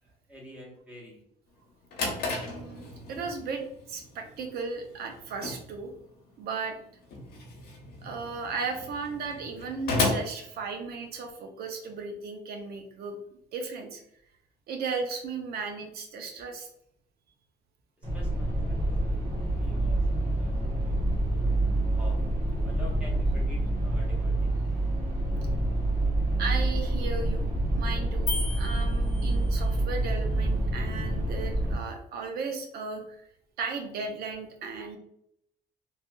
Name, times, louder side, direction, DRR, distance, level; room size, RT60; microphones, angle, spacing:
voice 1, 0.0-1.2 18.0-21.5 21.9-22.2 22.6-24.5, left 2 dB, 10° right, -3 dB, 1.1 m, -48 dB
Drawer open or close, 1.6-11.3, left 2 dB, 70° left, 1.1 m, -35 dB
voice 2, 2.3-3.6 3.9-5.9 6.4-6.8 8.0-13.2 13.5-14.0 14.7-16.7 26.4-33.2 33.6-35.0, right 4 dB, 65° right, 4 dB, 0.7 m, -36 dB
sound 1, 18.0-31.7, right 1 dB, 45° right, 1.3 m, -27 dB
sound 2, 28.3-29.8, left 3 dB, 50° left, 0.6 m, -36 dB
3.2 x 2.7 x 2.3 m, 0.74 s
cardioid pair, 110°, 17 cm